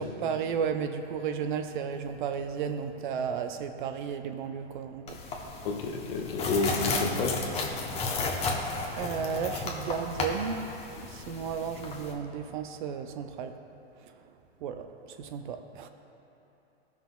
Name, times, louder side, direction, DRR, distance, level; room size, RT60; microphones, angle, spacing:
voice 1, 0.0-5.2 8.3-8.6 8.9-13.6 14.1-14.2 14.6-15.9, right 6 dB, 50° right, 8 dB, 0.5 m, -34 dB
sound 1, 5.1-12.1, left 3 dB, 20° left, 0.8 m, -33 dB
voice 2, 5.6-7.4, left 3 dB, 55° left, 1 dB, 1.2 m, -30 dB
17.0 x 5.8 x 2.3 m, 2.9 s
hypercardioid pair, 135°, 32 cm